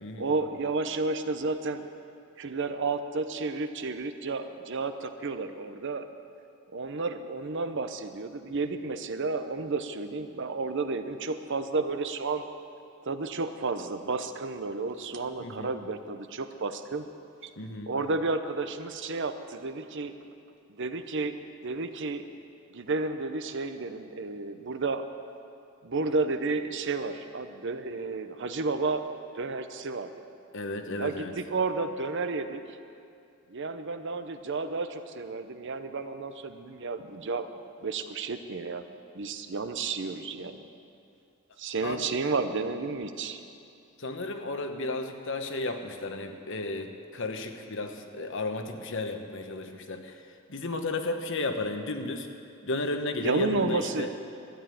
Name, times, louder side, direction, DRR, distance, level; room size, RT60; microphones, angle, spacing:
voice 1, 0.2-1.8 2.4-6.1 6.7-12.4 13.0-17.1 17.4-17.5 17.8-20.1 20.7-21.4 21.6-22.2 22.7-25.1 25.8-29.1 29.3-30.1 31.0-32.8 33.5-37.5 37.8-38.8 39.1-40.7 41.6-43.4 53.2-54.1, right 3 dB, 55° right, 9 dB, 0.7 m, -31 dB
voice 2, 17.6-17.9 30.5-31.3 41.8-42.1 44.0-50.2 50.5-52.3 52.6-54.1, left 2 dB, 60° left, 6 dB, 1.1 m, -33 dB
12.5 x 8.8 x 9.2 m, 2.5 s
head